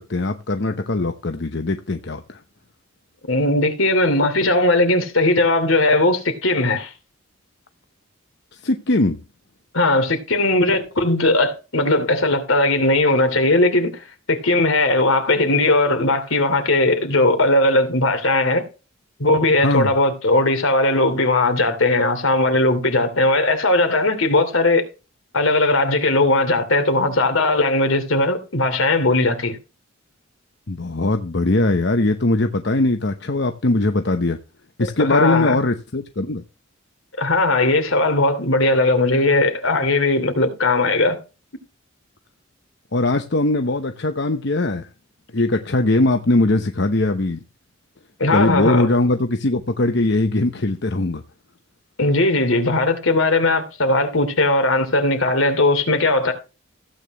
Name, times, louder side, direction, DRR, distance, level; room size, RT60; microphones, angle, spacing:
voice 1, 0.0-2.4 8.5-9.2 19.6-19.9 30.7-34.4 34.8-36.4 42.9-44.9 45.3-47.4 48.3-51.2, left 2 dB, 55° left, 0.9 m, -20 dB
voice 2, 3.3-6.9 9.7-18.6 19.2-24.8 25.3-29.6 35.0-35.6 37.2-41.2 48.2-48.9 52.0-56.3, left 2 dB, 75° left, 2.8 m, -18 dB
15.5 x 9.1 x 3.0 m
head